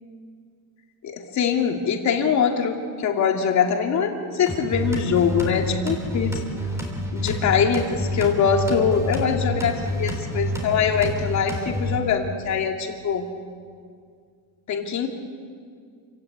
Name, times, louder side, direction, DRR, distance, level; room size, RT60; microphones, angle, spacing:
voice 1, 1.0-6.4 7.1-13.3 14.7-15.1, left 6 dB, 45° left, 3 dB, 2.8 m, -23 dB
sound 1, 4.5-12.0, left 1 dB, 5° right, 3.5 m, -28 dB
29.0 x 17.5 x 8.3 m, 2.1 s
cardioid pair, 165°, 39 cm